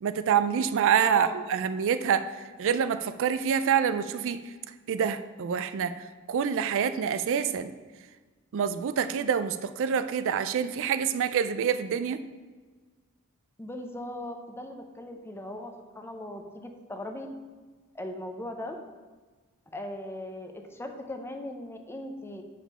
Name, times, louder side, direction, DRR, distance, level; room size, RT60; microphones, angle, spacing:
voice 1, 0.0-2.3 2.6-4.4 4.9-7.7 8.5-12.2, right 7 dB, 60° right, 11 dB, 0.3 m, -26 dB
voice 2, 13.6-17.3 17.9-18.8 19.7-22.4, left 1 dB, 10° left, 5 dB, 0.7 m, -39 dB
7.3 x 5.0 x 5.5 m, 1.4 s
head